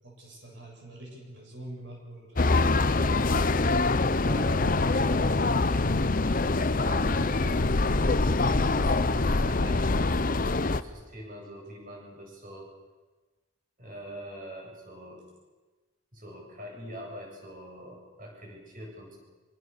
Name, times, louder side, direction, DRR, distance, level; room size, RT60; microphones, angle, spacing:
voice 1, 0.0-2.9, right 1 dB, 55° right, 0 dB, 7.6 m, -45 dB
sound 1, 2.4-10.8, left 3 dB, 40° left, 0.8 m, -24 dB
voice 2, 2.9-3.3 3.9-5.4 6.2-12.7 13.8-15.2 16.1-19.2, equal, 40° right, 0 dB, 7.6 m, -44 dB
sound 2, 4.3-10.3, left 3 dB, 80° left, 0.9 m, -37 dB
26.0 x 24.5 x 7.0 m, 1.2 s
head